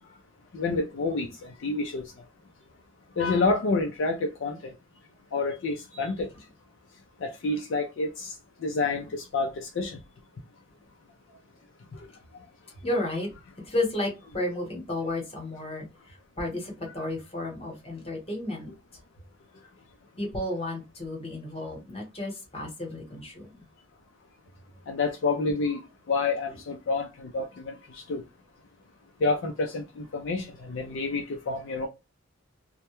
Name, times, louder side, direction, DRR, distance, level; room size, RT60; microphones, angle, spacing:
voice 1, 0.5-1.3 1.6-2.0 3.2-4.7 5.3-6.3 7.2-8.3 8.6-10.0 24.9-28.2 29.2-31.9, left 3 dB, 60° left, 0.4 m, -28 dB
voice 2, 12.8-13.3 13.6-15.9 16.4-18.7 20.2-23.6, left 1 dB, 30° left, 0.9 m, -32 dB
2.1 x 2.1 x 2.9 m
head